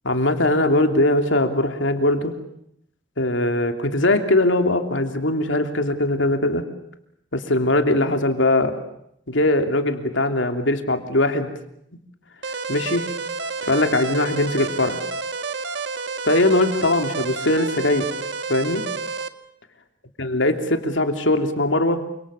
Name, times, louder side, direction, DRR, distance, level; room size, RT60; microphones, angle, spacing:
voice 1, 0.0-2.3 3.2-6.7 7.3-8.7 9.3-11.5 12.7-13.1 13.6-15.0 16.2-18.1 18.5-18.8 20.2-22.0, left 1 dB, 80° left, 6 dB, 3.0 m, -20 dB
sound 1, 12.4-19.3, right 4 dB, 65° right, 1.5 m, -30 dB
29.0 x 26.5 x 7.0 m, 0.73 s
head